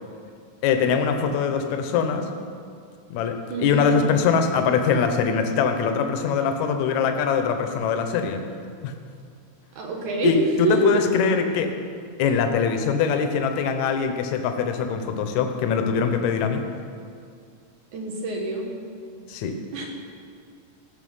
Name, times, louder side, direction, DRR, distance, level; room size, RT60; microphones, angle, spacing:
voice 1, 0.6-2.3 3.1-8.4 8.8-8.9 10.2-11.7 12.2-16.6 19.3-19.6, left 6 dB, 70° left, 6 dB, 2.0 m, -22 dB
voice 2, 3.5-3.9 9.8-11.0 17.9-18.7 19.7-19.9, right 2 dB, 65° right, 0 dB, 2.8 m, -26 dB
16.5 x 7.0 x 5.6 m, 2.2 s
omnidirectional pair, 3.8 m